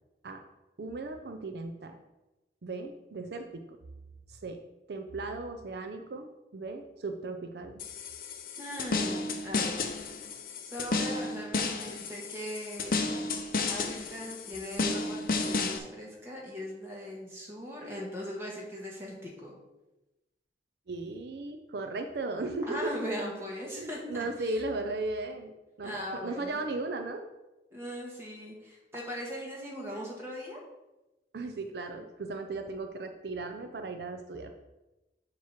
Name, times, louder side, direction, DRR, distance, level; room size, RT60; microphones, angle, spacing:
voice 1, 0.8-2.0 2.6-3.6 4.3-4.6 4.9-7.8 20.9-22.9 23.6-25.5 25.8-27.3 31.3-34.6, right 2 dB, 70° right, 5 dB, 0.5 m, -36 dB
sound 1, 7.8-15.8, left 3 dB, 50° left, 0.5 m, -32 dB
voice 2, 8.6-9.8 10.6-12.9 13.7-19.5 22.7-24.6 25.8-26.6 27.7-30.6, equal, 15° right, -3 dB, 1.4 m, -39 dB
7.3 x 3.0 x 5.7 m, 1.0 s
head